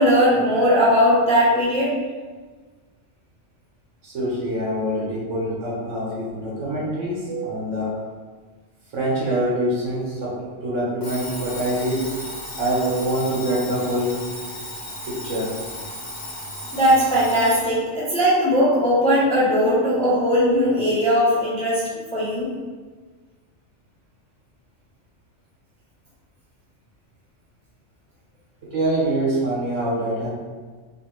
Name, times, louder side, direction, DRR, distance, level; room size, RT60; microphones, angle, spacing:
voice 1, 0.0-1.9 16.7-21.8 22.1-22.5, equal, 5° left, -8 dB, 0.6 m, -18 dB
voice 2, 4.0-8.0 8.9-12.0 12.6-14.2 15.1-15.5 28.6-30.3, right 1 dB, 80° right, -6 dB, 1.3 m, -25 dB
Alarm, 11.0-17.7, left 1 dB, 65° left, 1.3 m, -35 dB
3.2 x 2.5 x 3.0 m, 1.4 s
omnidirectional pair, 1.3 m